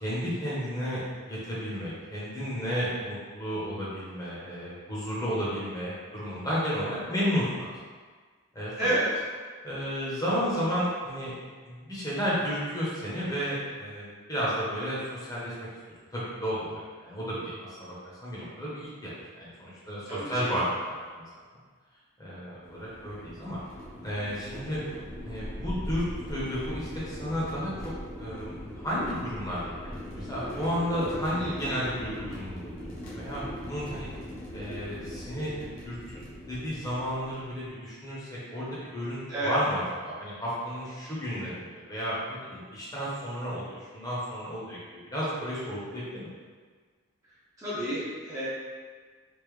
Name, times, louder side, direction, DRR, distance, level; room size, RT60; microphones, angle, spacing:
voice 1, 0.0-7.7 8.5-8.7 9.6-11.3 11.6-15.5 16.1-17.9 18.2-21.2 22.2-23.6 24.0-24.8 25.2-27.7 28.2-34.1 34.5-36.0 36.5-46.3, equal, 15° left, -9 dB, 0.9 m, -32 dB
voice 2, 20.1-20.5 31.4-31.7 39.3-39.6 47.6-48.5, right 1 dB, 15° right, -11 dB, 0.7 m, -30 dB
sound 1, 22.6-37.6, equal, 40° left, 0.9 m, -40 dB
3.4 x 2.8 x 3.2 m, 1.5 s
head